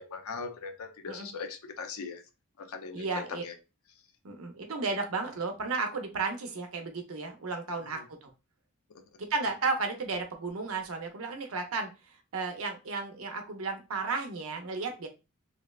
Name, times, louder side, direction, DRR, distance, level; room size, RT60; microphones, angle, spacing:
voice 1, 0.0-2.2 2.6-3.5 7.8-8.0 8.9-9.2, left 5 dB, 80° left, 0.5 m, -40 dB
voice 2, 2.9-3.4 4.2-8.3 9.2-11.9 12.3-15.1, right 3 dB, 70° right, 0.6 m, -33 dB
2.8 x 2.0 x 2.2 m
head